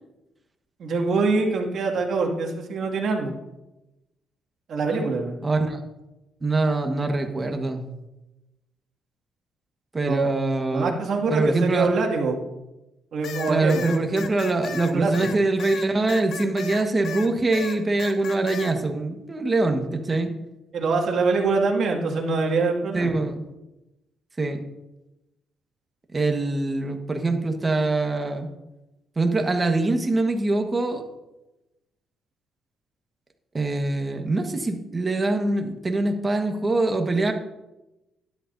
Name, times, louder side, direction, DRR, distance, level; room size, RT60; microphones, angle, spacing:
voice 1, 0.8-3.3 4.7-5.4 10.0-10.3 10.7-12.4 13.1-13.8 14.9-15.3 20.7-23.2, right 4 dB, 60° right, 0 dB, 2.1 m, -24 dB
voice 2, 5.4-5.8 6.4-7.8 9.9-10.9 11.3-11.9 13.5-20.3 22.9-23.5 24.4-24.6 26.1-28.5 29.1-31.0 33.5-37.3, right 2 dB, 25° right, 5 dB, 1.4 m, -24 dB
sound 1, 13.2-17.3 17.5-18.7, left 7 dB, 70° left, 1.0 m, -35 dB
12.0 x 10.5 x 2.7 m, 0.98 s
cardioid pair, 90°, 0 cm